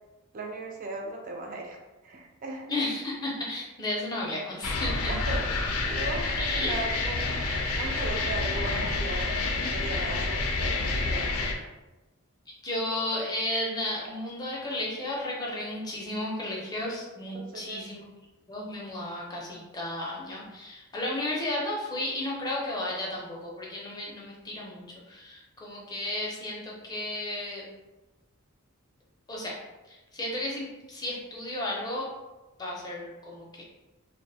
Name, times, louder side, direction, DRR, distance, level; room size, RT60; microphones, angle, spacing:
voice 1, 0.3-2.7 5.1-11.5 17.3-17.9, right 2 dB, 40° right, 1 dB, 0.4 m, -38 dB
voice 2, 2.7-5.3 6.4-6.9 12.6-18.1 18.5-27.6 29.3-29.6 29.9-32.1 32.6-33.6, left 1 dB, 20° left, -3 dB, 0.5 m, -33 dB
sound 1, 4.6-11.5, left 3 dB, 80° left, 0.4 m, -28 dB
2.4 x 2.0 x 2.6 m, 1.1 s
head